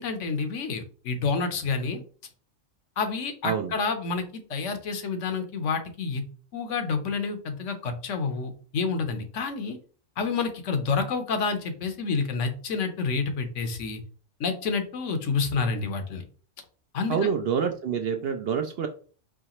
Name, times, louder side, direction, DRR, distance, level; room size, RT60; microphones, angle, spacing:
voice 1, 0.0-2.0 3.0-6.2 6.5-9.8 10.2-14.0 14.4-16.2 16.9-17.3, left 4 dB, 70° left, 7 dB, 1.1 m, -29 dB
voice 2, 17.1-18.9, right 7 dB, 65° right, 6 dB, 0.6 m, -27 dB
4.7 x 3.2 x 2.9 m, 0.40 s
omnidirectional pair, 1.3 m